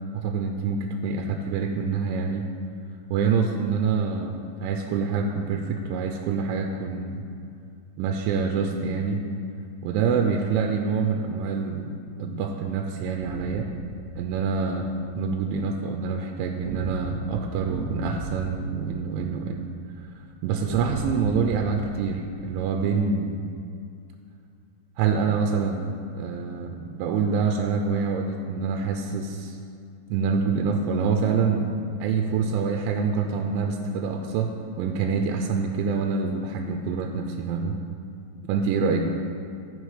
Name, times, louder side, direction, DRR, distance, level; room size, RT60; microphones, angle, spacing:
voice 1, 0.1-2.5 3.1-4.4 4.6-7.2 8.0-9.2 9.8-11.9 12.2-13.7 14.2-14.9 15.2-19.7 20.0-20.1 20.4-23.4 25.0-29.6 30.1-37.8 38.5-39.0, right 5 dB, 90° right, 4 dB, 3.1 m, -26 dB
sound 1, 13.2-14.6 16.6-19.6 20.7-22.8, right 1 dB, 50° right, 1.0 m, -36 dB
14.5 x 5.9 x 4.9 m, 2.4 s
omnidirectional pair, 5.4 m